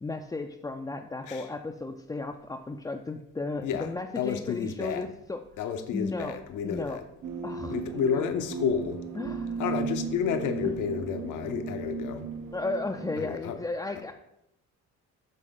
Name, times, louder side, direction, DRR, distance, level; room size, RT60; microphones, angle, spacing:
voice 1, 0.0-5.4 5.9-6.4 6.6-7.0 7.4-7.8 8.1-8.2 9.2-9.6 10.6-10.8 12.5-14.1, left 3 dB, 10° left, 3 dB, 0.4 m, -34 dB
voice 2, 4.2-5.1 5.6-7.0 7.7-9.0 9.6-12.3 13.2-13.6, left 7 dB, 70° left, 7 dB, 0.8 m, -30 dB
sound 1, 7.2-13.3, right 5 dB, 70° right, 0.8 m, -35 dB
7.6 x 3.4 x 3.8 m, 0.82 s
supercardioid pair, 65°, 32 cm